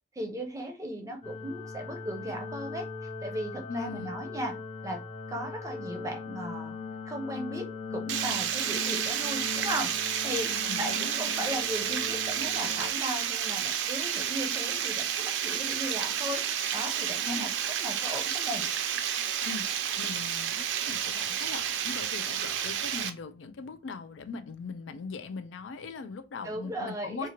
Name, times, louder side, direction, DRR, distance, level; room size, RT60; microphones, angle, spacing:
voice 1, 0.1-4.5 4.8-5.0 5.3-6.7 7.1-9.9 10.2-10.5 10.8-16.4 16.7-17.5 17.8-18.6 26.4-27.3, equal, 15° right, 0.6 m, -36 dB
sound 1, 1.2-12.9, left 5 dB, 30° left, 0.7 m, -40 dB
voice 2, 3.7-4.2 10.5-11.3 17.2-17.5 19.4-19.7 20.0-27.3, left 4 dB, 90° left, 0.4 m, -40 dB
Water, 8.1-23.1, right 9 dB, 80° right, 0.4 m, -31 dB
2.8 x 2.4 x 2.8 m
head